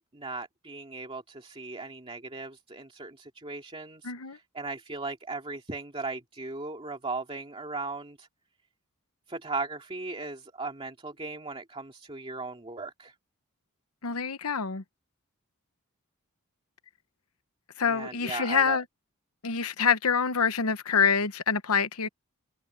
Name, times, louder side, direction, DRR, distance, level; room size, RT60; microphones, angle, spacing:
voice 1, 0.0-8.3 9.3-13.1 17.9-18.8, right 3 dB, 25° right, 2.4 m, -37 dB
voice 2, 4.0-4.4 14.0-14.8 17.8-18.8 19.4-22.1, left 6 dB, 80° left, 1.0 m, -26 dB
head